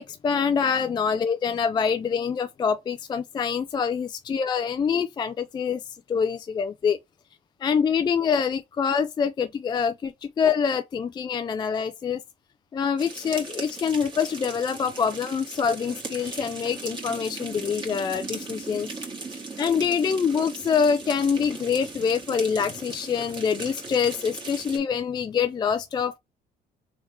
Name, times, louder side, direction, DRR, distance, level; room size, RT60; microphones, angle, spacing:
voice 1, 0.0-5.8 6.1-7.0 7.6-12.2 12.7-18.9 19.6-26.2, left 6 dB, 25° left, 0.3 m, -25 dB
sound 1, 13.0-24.8, right 3 dB, 25° right, 1.7 m, -38 dB
3.5 x 3.3 x 3.1 m
cardioid pair, 110°, 17 cm